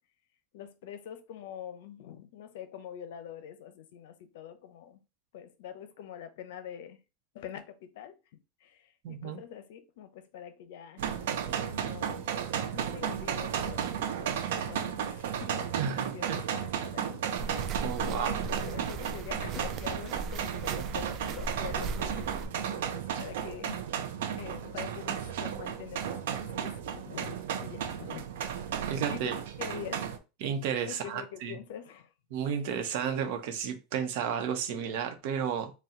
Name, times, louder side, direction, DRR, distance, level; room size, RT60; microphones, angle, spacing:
voice 1, 0.5-5.0 5.3-7.0 7.3-11.0 11.7-12.3 12.7-13.9 14.2-15.6 15.9-23.8 24.4-28.2 28.7-30.0 30.9-32.1, left 9 dB, 75° left, 0.7 m, -45 dB
voice 2, 9.0-9.4 15.7-16.4 17.8-18.4 28.9-29.4 30.4-31.6 32.3-35.7, right 8 dB, 60° right, 0.9 m, -32 dB
sound 1, 11.0-30.2, right 8 dB, 90° right, 0.6 m, -34 dB
sound 2, 17.4-22.5, right 3 dB, 35° right, 0.4 m, -38 dB
4.3 x 2.3 x 3.8 m
supercardioid pair, 150°, 0 cm